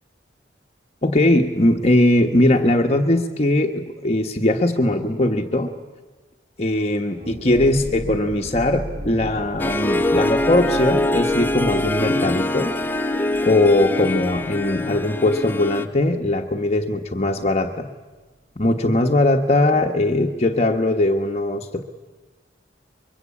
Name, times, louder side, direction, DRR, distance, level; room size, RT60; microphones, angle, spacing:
voice 1, 1.0-5.7 6.6-12.7 13.4-17.9 18.6-21.8, left 1 dB, 35° left, 2 dB, 1.2 m, -20 dB
sound 1, 7.2-16.6 16.8-16.9 17.3-17.6, equal, 40° right, 2.5 m, -37 dB
Harp, 9.6-15.9, left 1 dB, 10° left, 1.0 m, -23 dB
24.0 x 23.0 x 8.6 m, 1.2 s
head